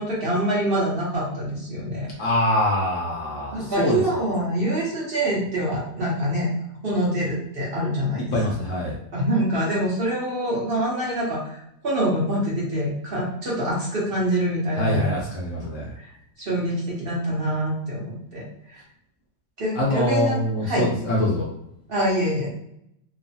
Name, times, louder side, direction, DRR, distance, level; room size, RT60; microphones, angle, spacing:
voice 1, 0.0-2.1 3.5-6.5 6.8-8.3 9.1-11.6 11.8-15.1 16.4-18.8 19.6-20.9 21.9-22.5, right 1 dB, 50° right, -5 dB, 0.7 m, -25 dB
voice 2, 2.2-4.0 8.3-8.9 14.8-15.9 19.7-21.5, left 1 dB, 65° left, -3 dB, 0.8 m, -24 dB
3.0 x 2.0 x 2.7 m, 0.76 s
omnidirectional pair, 1.8 m